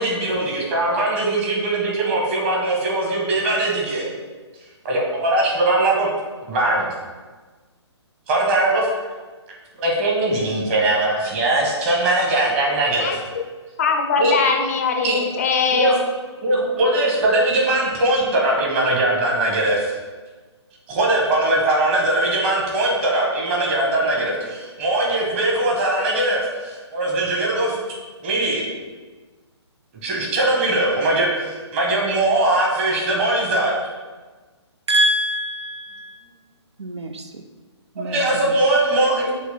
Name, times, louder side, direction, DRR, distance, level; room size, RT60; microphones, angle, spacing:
voice 1, 0.0-4.1 4.8-6.1 6.5-6.9 8.3-9.1 9.8-13.2 14.2-14.4 15.0-15.2 15.7-15.9 16.4-19.9 20.9-27.8 28.2-28.6 30.0-33.7 38.0-39.3, right 2 dB, 30° right, -2 dB, 1.5 m, -20 dB
voice 2, 13.8-15.9, left 5 dB, 30° left, 4 dB, 0.5 m, -21 dB
voice 3, 34.9-35.8 36.8-37.4 38.0-38.4, equal, 70° right, 6 dB, 0.5 m, -23 dB
6.3 x 3.1 x 5.6 m, 1.3 s
figure-of-eight pair, 135°, 15 cm